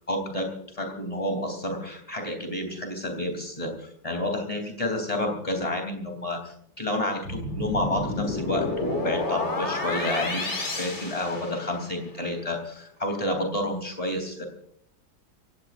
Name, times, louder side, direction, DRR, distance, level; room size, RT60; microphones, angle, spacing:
voice 1, 0.1-10.5 10.8-14.5, left 1 dB, 15° left, 4 dB, 3.4 m, -30 dB
sound 1, 7.3-12.0, left 2 dB, 35° left, 2.7 m, -30 dB
29.5 x 16.5 x 2.6 m, 0.68 s
omnidirectional pair, 2.1 m